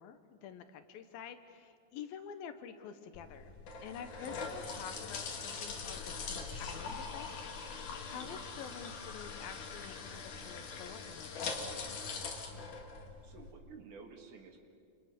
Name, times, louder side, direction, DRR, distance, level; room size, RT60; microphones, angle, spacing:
voice 1, 0.0-3.5 3.8-7.3 7.7-11.8, left 8 dB, 75° left, 9 dB, 2.6 m, -48 dB
sound 1, 3.1-13.5, left 5 dB, 55° left, 3.4 m, -42 dB
voice 2, 13.2-14.6, right 5 dB, 60° right, 3 dB, 3.3 m, -53 dB
28.0 x 27.5 x 6.7 m, 2.4 s
omnidirectional pair, 4.6 m